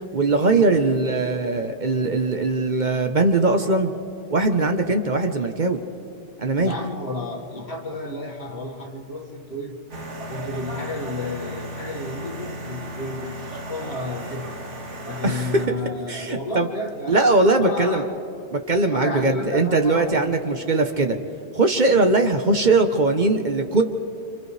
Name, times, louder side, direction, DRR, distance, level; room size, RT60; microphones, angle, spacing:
voice 1, 0.1-3.9 4.3-5.8 6.4-6.7 15.2-15.6 16.1-16.7 17.1-18.0 18.5-21.2 21.5-23.8, right 3 dB, 45° right, 5 dB, 1.1 m, -20 dB
voice 2, 6.6-9.8 10.3-14.6 15.0-17.3 17.6-18.1 18.9-20.4, left 2 dB, 70° left, -1 dB, 2.3 m, -32 dB
sound 1, 9.9-15.7, right 1 dB, 85° right, 1.8 m, -35 dB
29.5 x 26.0 x 3.3 m, 2.6 s
omnidirectional pair, 1.2 m